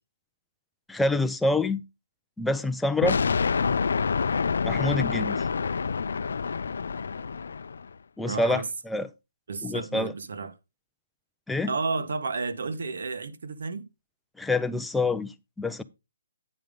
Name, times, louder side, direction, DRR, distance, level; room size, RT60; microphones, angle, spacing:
voice 1, 0.9-1.8 2.4-3.2 4.6-5.4 8.2-9.1 9.6-10.1 11.5-11.7 14.4-15.8, left 2 dB, 5° left, 0.4 m, -26 dB
sound 1, 3.0-7.9, left 5 dB, 75° left, 0.4 m, -27 dB
voice 2, 8.2-8.7 9.5-10.5 11.7-13.9, right 4 dB, 70° right, 1.3 m, -32 dB
9.1 x 5.0 x 5.2 m
hypercardioid pair, 165°, 0 cm